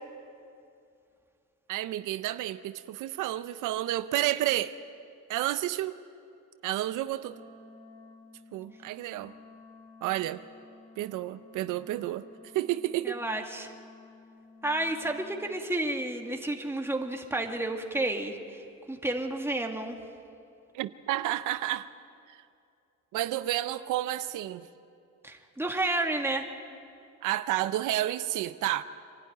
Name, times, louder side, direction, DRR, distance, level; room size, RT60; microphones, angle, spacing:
voice 1, 1.7-4.7 5.3-6.0 6.6-7.4 8.5-9.3 10.0-10.4 11.0-12.3 12.5-13.2 20.7-21.9 22.3-22.4 23.1-24.7 27.2-28.8, right 14 dB, 90° right, 13 dB, 0.6 m, -30 dB
Wind instrument woodwind instrument, 7.2-15.6, left 4 dB, 55° left, 6.2 m, -53 dB
voice 2, 13.0-13.7 14.6-18.6 18.9-20.0 25.2-26.5, right 2 dB, 10° right, 2 dB, 2.1 m, -31 dB
25.5 x 12.5 x 9.3 m, 2.5 s
cardioid pair, 90°, 30 cm